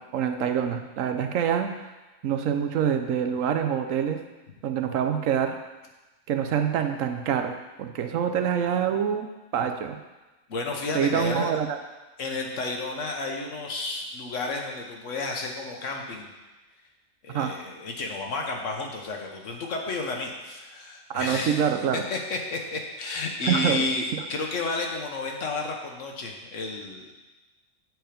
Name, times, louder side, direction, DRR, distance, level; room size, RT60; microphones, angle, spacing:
voice 1, 0.1-1.7 2.2-4.2 4.6-5.6 6.3-9.3 9.5-10.0 10.9-11.8 17.3-17.5 21.1-22.0 23.4-23.8, right 8 dB, 90° right, 6 dB, 1.1 m, -26 dB
voice 2, 10.5-11.5 12.2-16.3 17.2-21.6 22.1-27.1, left 3 dB, 75° left, 1 dB, 1.4 m, -31 dB
7.7 x 4.7 x 5.1 m, 1.1 s
omnidirectional pair, 1.3 m